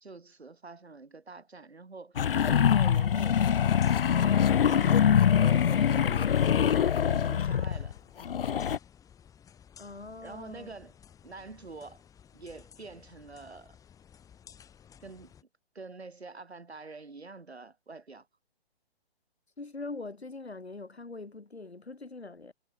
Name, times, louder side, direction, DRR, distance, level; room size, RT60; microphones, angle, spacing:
voice 1, 0.0-3.4 4.1-8.0 10.2-10.9 11.2-12.0 12.3-13.8 15.0-15.3 15.8-18.3, right 3 dB, 80° right, 2.0 m, -46 dB
sound 1, 2.1-15.4, left 8 dB, 10° left, 6.0 m, -56 dB
sound 2, 2.2-7.9 8.2-8.8, left 8 dB, 60° left, 0.5 m, -24 dB
voice 2, 9.8-10.7 19.6-22.5, left 3 dB, 85° left, 1.9 m, -42 dB
figure-of-eight pair, 135°, 32 cm